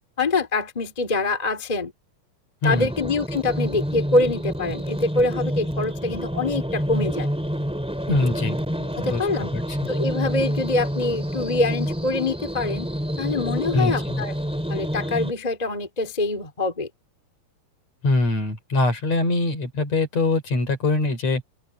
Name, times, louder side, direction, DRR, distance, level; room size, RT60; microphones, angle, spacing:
voice 1, 0.2-1.9 2.6-7.3 8.8-9.5 9.9-12.9 13.2-14.3 14.7-16.9, left 3 dB, 15° left, 1.8 m, -25 dB
voice 2, 2.6-2.9 8.1-8.6 9.0-9.3 9.5-9.8 13.7-14.2 18.0-21.4, left 2 dB, 45° left, 5.6 m, -23 dB
sound 1, 2.7-15.3, equal, ahead, 2.1 m, -28 dB
open air
omnidirectional pair, 4.4 m